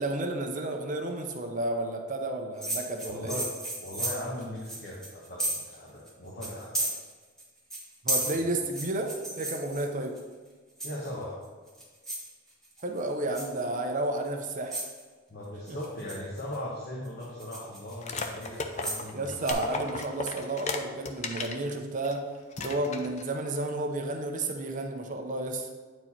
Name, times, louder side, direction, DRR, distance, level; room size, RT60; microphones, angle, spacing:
voice 1, 0.0-3.4 8.0-10.2 12.8-14.8 15.7-15.8 19.1-22.3 22.6-25.7, right 2 dB, 40° right, 3 dB, 0.7 m, -32 dB
sound 1, 2.6-5.8 6.1-6.2 6.4-7.4 7.7-10.2 10.8-11.2 11.7-12.3 12.6-13.0 13.3-13.6 14.2-14.3 14.7-15.0 15.7-16.6 17.0-19.1 19.4-19.5, right 2 dB, 5° left, 1.8 m, -33 dB
voice 2, 3.0-3.5 3.8-6.9 10.8-11.4 15.3-19.3, left 1 dB, 50° left, -4 dB, 1.1 m, -38 dB
sound 2, 18.0-21.6 22.0-22.2 22.5-23.3, left 4 dB, 35° left, 0.6 m, -35 dB
8.9 x 4.7 x 4.2 m, 1.4 s
head